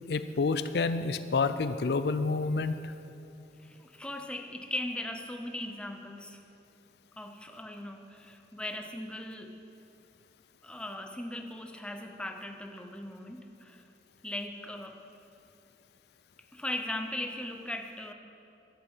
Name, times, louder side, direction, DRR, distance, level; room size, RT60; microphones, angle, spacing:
voice 1, 0.1-2.9, left 4 dB, 65° left, 12 dB, 0.4 m, -29 dB
voice 2, 3.6-6.4 7.2-9.7 10.6-13.8 14.2-15.0 16.5-18.1, left 1 dB, 5° left, 4 dB, 0.7 m, -39 dB
13.0 x 8.1 x 7.2 m, 2.7 s
head